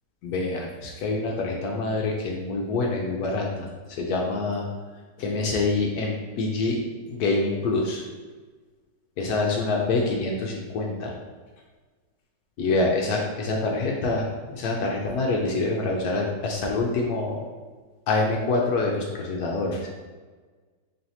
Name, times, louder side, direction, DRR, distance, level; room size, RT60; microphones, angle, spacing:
voice 1, 0.2-4.7 5.2-8.0 9.2-11.1 12.6-17.4 18.1-19.9, left 3 dB, 70° left, 0 dB, 1.0 m, -26 dB
4.4 x 3.2 x 2.7 m, 1.4 s
omnidirectional pair, 1.9 m